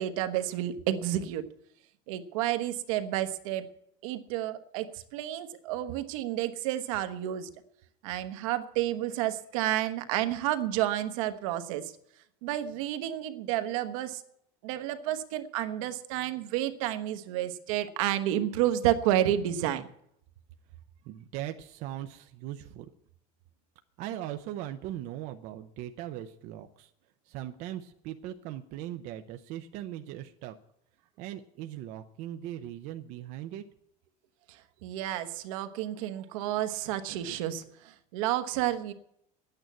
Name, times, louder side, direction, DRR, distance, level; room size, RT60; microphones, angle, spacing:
voice 1, 0.0-1.4 2.1-3.7 4.0-7.5 8.0-11.9 12.4-14.2 14.6-19.9 34.8-38.9, right 12 dB, 70° right, 9 dB, 1.2 m, -30 dB
voice 2, 21.0-22.9 24.0-26.9 27.2-30.5 31.2-33.6, right 12 dB, 40° right, 7 dB, 0.6 m, -39 dB
10.5 x 8.9 x 9.2 m, 0.72 s
cardioid pair, 180°, 18 cm